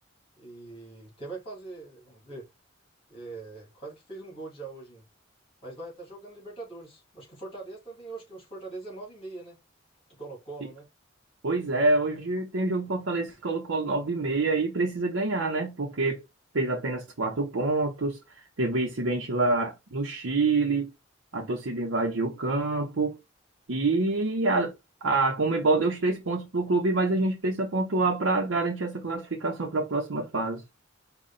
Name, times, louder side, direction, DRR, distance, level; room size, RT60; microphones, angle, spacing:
voice 1, 0.4-2.5 3.1-5.1 5.6-9.6 10.1-10.9, right 3 dB, 25° left, 2.7 m, -42 dB
voice 2, 11.4-16.2 16.5-20.9 21.3-23.2 23.7-24.7 25.0-30.6, right 3 dB, 75° right, 0.8 m, -26 dB
4.9 x 2.3 x 4.0 m
head